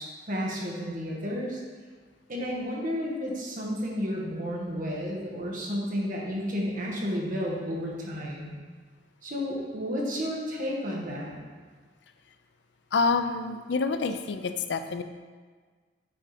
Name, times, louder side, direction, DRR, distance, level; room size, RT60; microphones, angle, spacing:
voice 1, 0.0-1.6 2.3-8.5 9.2-11.3, equal, 50° right, -3 dB, 1.5 m, -32 dB
voice 2, 12.9-15.0, left 4 dB, 75° left, 9 dB, 0.5 m, -27 dB
8.7 x 3.7 x 5.0 m, 1.5 s
head